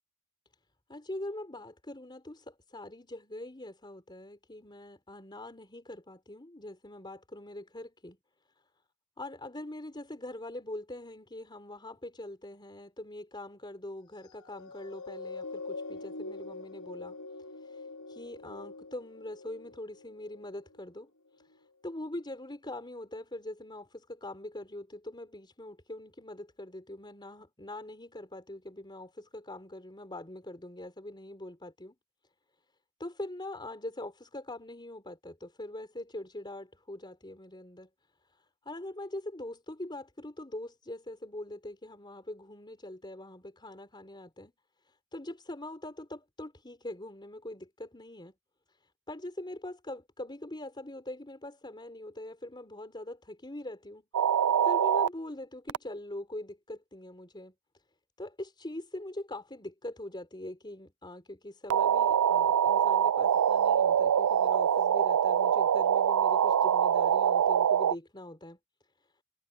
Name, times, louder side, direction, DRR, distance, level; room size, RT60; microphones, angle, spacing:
voice 1, 0.9-8.2 9.2-17.2 17.6-21.1 21.4-31.9 33.0-37.9 38.3-44.5 44.8-48.3 48.7-48.8 49.1-54.1 54.6-57.5 58.2-68.6, left 1 dB, 20° left, 4.1 m, -43 dB
sound 1, 14.1-20.8 21.4-21.6, left 3 dB, 75° left, 4.9 m, -44 dB
sound 2, 54.1-55.1 55.7-55.8 61.7-68.0, right 8 dB, 80° right, 0.4 m, -24 dB
head